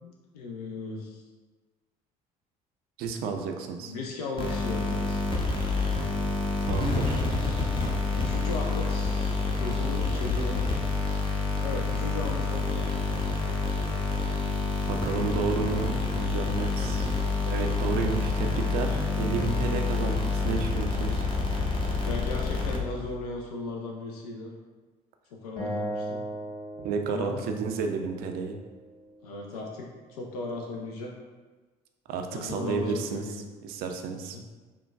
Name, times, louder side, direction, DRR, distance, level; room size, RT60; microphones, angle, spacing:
voice 1, 0.0-1.2 3.8-5.2 8.1-10.7 11.6-13.2 22.1-24.5 25.3-26.2 27.1-27.4 29.2-31.1 32.3-33.5 34.3-34.4, left 3 dB, 70° left, 0 dB, 0.4 m, -36 dB
voice 2, 3.0-3.9 6.6-7.3 14.9-21.3 26.8-28.6 32.1-34.4, right 5 dB, 50° right, 4 dB, 0.4 m, -32 dB
sound 1, 4.4-23.2, left 3 dB, 25° left, 0.7 m, -28 dB
Acoustic guitar, 25.6-28.8, right 1 dB, 45° left, 1.3 m, -37 dB
5.6 x 2.2 x 2.3 m, 1.3 s
figure-of-eight pair, 50°, 20 cm